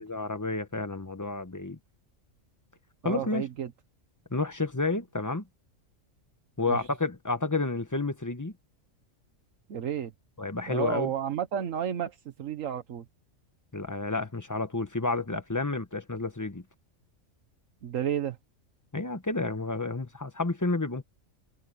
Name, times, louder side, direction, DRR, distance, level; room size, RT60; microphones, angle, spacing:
voice 1, 0.0-1.8 3.0-3.4 4.3-5.5 6.6-8.5 10.4-11.1 13.7-16.6 18.9-21.0, left 3 dB, 15° left, 1.2 m, -30 dB
voice 2, 3.0-3.7 6.7-6.9 9.7-10.1 10.7-13.1 17.8-18.4, right 9 dB, 75° right, 1.4 m, -32 dB
omnidirectional pair, 1.4 m